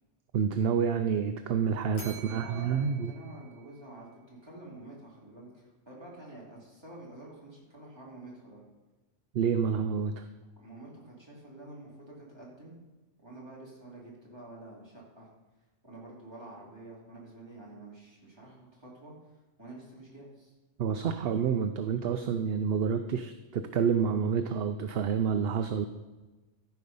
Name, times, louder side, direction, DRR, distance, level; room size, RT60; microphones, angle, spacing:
voice 1, 0.3-3.1 9.3-10.3 20.8-25.9, right 7 dB, 60° right, 9 dB, 0.7 m, -28 dB
Bell, 1.9-4.2, right 3 dB, 45° left, 1.8 m, -50 dB
voice 2, 2.2-8.6 10.6-12.7 13.2-15.3 15.8-19.3 19.6-20.5, right 2 dB, 20° right, -5 dB, 3.0 m, -48 dB
14.0 x 5.0 x 5.4 m, 1.2 s
omnidirectional pair, 1.3 m